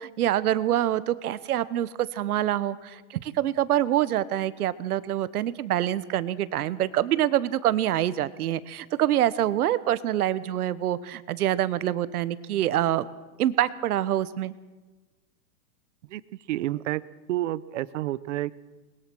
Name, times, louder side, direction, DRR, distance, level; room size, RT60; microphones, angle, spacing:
voice 1, 0.0-13.1 13.4-14.5, right 12 dB, 75° right, 16 dB, 1.2 m, -26 dB
voice 2, 16.5-17.0 17.3-18.5, right 15 dB, 55° right, 19 dB, 0.8 m, -29 dB
21.0 x 21.0 x 6.3 m, 1.2 s
supercardioid pair, 170°, 45 cm